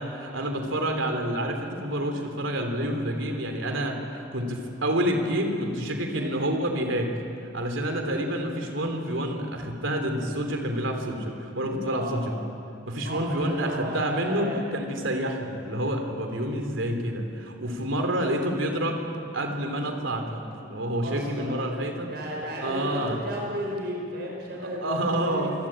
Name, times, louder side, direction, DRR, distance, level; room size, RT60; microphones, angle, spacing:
voice 1, 0.0-7.1 7.5-12.4 12.9-19.0 19.3-22.1 22.6-23.2 24.8-25.5, right 1 dB, 80° right, 4 dB, 3.3 m, -28 dB
voice 2, 11.9-12.2 13.0-14.6 21.0-21.5 22.1-25.5, equal, 55° right, -1 dB, 5.3 m, -33 dB
27.0 x 21.5 x 9.0 m, 2.8 s
head